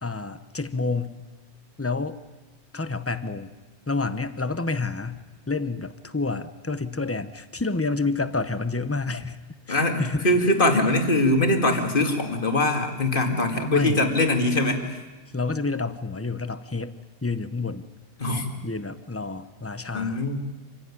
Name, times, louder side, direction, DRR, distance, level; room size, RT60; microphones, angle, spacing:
voice 1, 0.0-1.2 1.8-2.2 2.7-3.5 3.9-9.4 9.7-10.3 13.7-14.0 15.3-16.9 17.2-17.9 18.6-20.2, left 3 dB, 15° left, 12 dB, 0.7 m, -29 dB
voice 2, 9.7-15.0 18.2-18.5 19.9-20.3, left 2 dB, 40° left, 5 dB, 2.5 m, -22 dB
26.0 x 16.0 x 9.9 m, 1.2 s
omnidirectional pair, 1.4 m